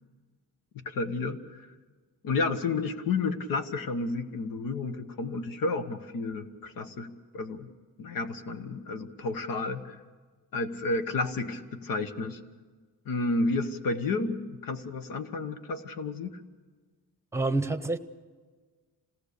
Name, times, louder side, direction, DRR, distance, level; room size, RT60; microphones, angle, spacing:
voice 1, 0.7-1.7 2.2-7.7 8.0-10.0 10.5-12.4 13.0-16.4, left 3 dB, 75° left, 1.4 m, -31 dB
voice 2, 17.3-18.0, right 2 dB, 10° right, 0.9 m, -27 dB
27.0 x 18.0 x 6.8 m
cardioid pair, 140°, 34 cm